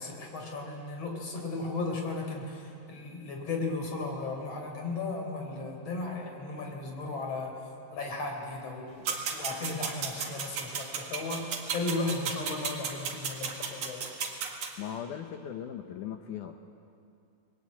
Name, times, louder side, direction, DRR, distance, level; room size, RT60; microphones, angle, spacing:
voice 1, 0.0-7.6 7.9-8.9 9.3-14.1, left 3 dB, 40° left, 2 dB, 4.7 m, -35 dB
sound 1, 9.1-14.7, right 6 dB, 55° right, 3.0 m, -35 dB
voice 2, 14.8-16.5, left 9 dB, 75° left, 5 dB, 1.9 m, -38 dB
28.5 x 21.0 x 8.5 m, 2.5 s
omnidirectional pair, 4.7 m